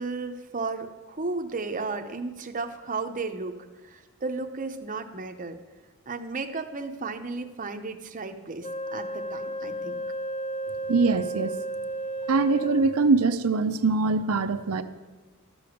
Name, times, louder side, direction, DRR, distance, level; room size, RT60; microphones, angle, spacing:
voice 1, 0.0-5.6 6.1-10.0, right 3 dB, 40° right, 6 dB, 0.8 m, -34 dB
Wind instrument woodwind instrument, 8.6-13.2, right 1 dB, 30° left, 0.6 m, -33 dB
voice 2, 10.9-11.5 12.3-14.8, right 4 dB, 75° right, 10 dB, 0.6 m, -23 dB
12.5 x 6.9 x 6.5 m, 1.2 s
head